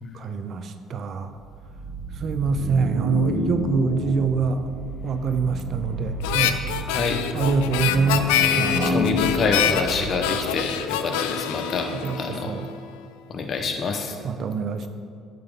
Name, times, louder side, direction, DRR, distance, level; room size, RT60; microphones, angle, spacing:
voice 1, 0.1-1.3 2.2-4.6 5.0-6.6 7.3-9.1 12.0-12.2 12.5-12.7 14.2-14.9, right 5 dB, 55° right, 9 dB, 0.5 m, -25 dB
sound 1, 1.4-10.7, left 2 dB, ahead, 1.0 m, -30 dB
Harmonica, 6.2-12.7, left 10 dB, 85° left, 0.3 m, -26 dB
voice 2, 6.8-7.2 8.8-11.9 12.1-12.5 13.3-14.2, left 4 dB, 50° left, 4 dB, 0.9 m, -26 dB
8.1 x 5.2 x 3.7 m, 2.2 s
supercardioid pair, 70°, 0 cm